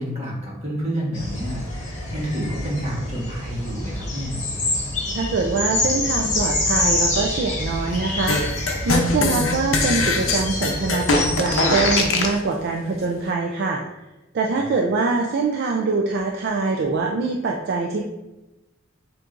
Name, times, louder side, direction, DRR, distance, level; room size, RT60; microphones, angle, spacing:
voice 1, 0.0-4.4 14.5-14.7, equal, 30° right, -4 dB, 1.2 m, -29 dB
sound 1, 1.1-12.0, left 2 dB, 35° left, 1.3 m, -26 dB
voice 2, 5.1-8.4 8.9-13.8 14.3-18.0, right 4 dB, 55° right, 1 dB, 0.4 m, -23 dB
sound 2, 8.3-12.4, left 3 dB, 65° left, 0.6 m, -22 dB
7.1 x 2.6 x 2.5 m, 1.0 s
head